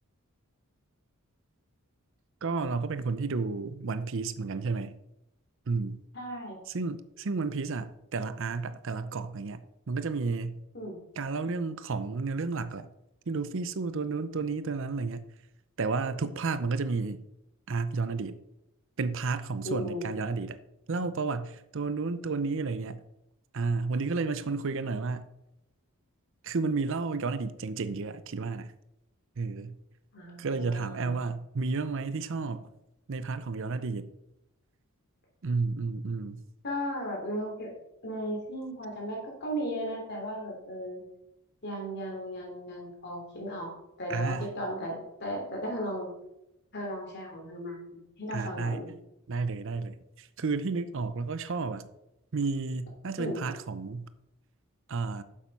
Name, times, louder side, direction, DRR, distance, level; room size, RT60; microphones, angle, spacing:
voice 1, 2.4-4.9 5.7-6.0 6.7-10.6 11.2-12.9 13.3-15.2 15.8-17.2 17.7-18.4 19.0-20.6 20.9-23.0 23.5-25.3 26.4-28.7 29.4-29.8 30.4-32.7 33.1-34.1 35.4-36.4 44.1-44.5 48.3-48.8 49.3-51.8 52.3-54.1 54.9-55.2, right 4 dB, 60° right, 0.6 m, -32 dB
voice 2, 6.1-6.6 10.7-11.0 19.6-20.1 30.1-31.2 36.6-37.7 38.0-41.0 41.6-46.1 46.7-48.9 53.2-53.4, equal, 50° left, 3.2 m, -36 dB
8.6 x 7.5 x 5.4 m
head